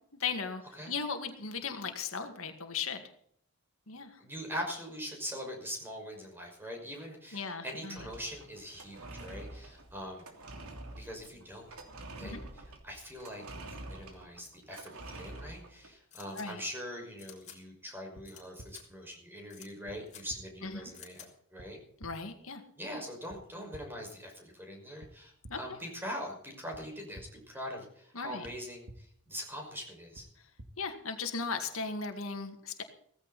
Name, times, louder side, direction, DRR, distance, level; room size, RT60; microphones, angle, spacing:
voice 1, 0.2-3.0 3.9-4.2 7.3-8.1 12.2-12.4 16.4-16.6 20.6-20.9 22.0-22.6 25.5-25.6 28.1-28.5 30.8-32.8, left 5 dB, 70° left, 6 dB, 2.0 m, -37 dB
voice 2, 4.2-10.2 10.9-11.7 12.2-13.4 13.7-21.8 22.8-30.3, equal, 10° right, 1 dB, 5.7 m, -42 dB
sound 1, 8.0-15.9, right 2 dB, 90° right, 3.0 m, -47 dB
sound 2, 16.1-16.5 17.2-17.6 18.2-18.4 18.7-18.8 19.5-19.7 20.1-20.2 20.9-21.3, left 9 dB, 35° left, 3.7 m, -51 dB
sound 3, 18.1-18.2 18.6-18.7 19.9-20.0 20.3-20.4 21.6-21.7 22.0-22.1 23.3-23.4 23.7-23.8 25.0-25.1 25.4-25.5 26.7-26.8 27.1-27.2 28.4-28.5 28.9-29.0 30.1-30.2 30.6-30.7, right 1 dB, 65° right, 2.0 m, -48 dB
16.5 x 15.5 x 4.2 m, 0.65 s
head